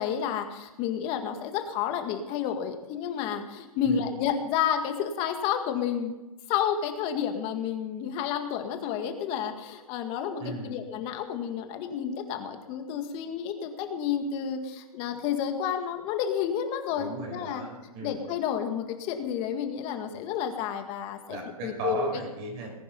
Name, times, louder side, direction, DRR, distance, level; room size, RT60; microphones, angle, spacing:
voice 1, 0.0-6.2 6.5-17.6 18.0-21.4 21.6-22.1, left 8 dB, 30° left, 6 dB, 1.9 m, -30 dB
voice 2, 10.4-10.8 17.0-18.2 21.3-22.7, right 3 dB, 30° right, 1 dB, 5.5 m, -36 dB
20.0 x 10.0 x 5.4 m, 1.1 s
hypercardioid pair, 145°, 19 cm